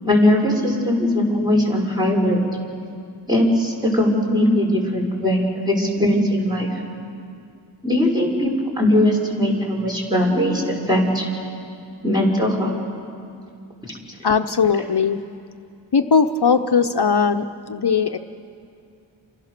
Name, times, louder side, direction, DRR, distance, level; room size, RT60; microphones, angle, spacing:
voice 1, 0.0-2.4 3.3-6.8 7.8-8.5 8.8-11.2 12.0-12.8 13.9-14.0, left 1 dB, 10° right, -2 dB, 5.9 m, -19 dB
voice 2, 14.2-15.2 15.9-18.2, left 5 dB, 60° left, 7 dB, 0.8 m, -19 dB
29.5 x 27.0 x 6.7 m, 2.4 s
wide cardioid pair, 70°, 46 cm